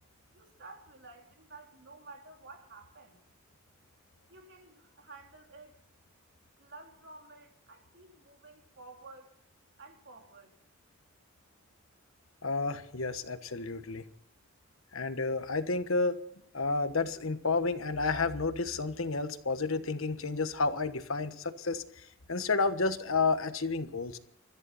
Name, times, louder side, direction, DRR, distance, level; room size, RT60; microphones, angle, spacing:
voice 1, 0.3-3.2 4.3-5.8 6.6-9.3 9.8-10.5, right 3 dB, 55° right, 2 dB, 3.7 m, -52 dB
voice 2, 12.4-14.0 14.9-16.2 16.5-24.2, left 3 dB, 70° left, 10 dB, 1.3 m, -31 dB
24.5 x 14.0 x 4.2 m, 0.69 s
head